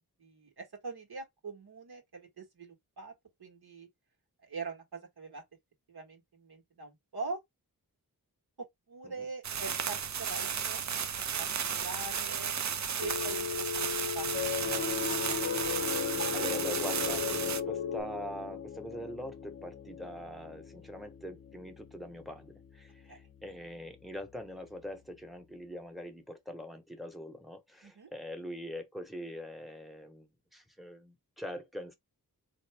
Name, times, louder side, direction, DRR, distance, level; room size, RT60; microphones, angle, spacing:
voice 1, 0.2-3.1 3.4-3.9 4.4-5.4 5.9-7.4 8.6-10.8 11.2-11.5 11.7-12.5 13.0-14.8 23.1-23.2 27.8-28.1, right 4 dB, 75° right, 1.4 m, -43 dB
sound 1, 9.4-17.6, right 7 dB, 50° right, 0.5 m, -34 dB
Telephone, 13.0-18.0, left 7 dB, 85° left, 0.5 m, -36 dB
Piano, 14.2-24.7, left 7 dB, 35° left, 0.6 m, -40 dB
voice 2, 16.3-31.9, equal, ahead, 0.9 m, -43 dB
3.8 x 2.6 x 3.3 m
wide cardioid pair, 80°, 38 cm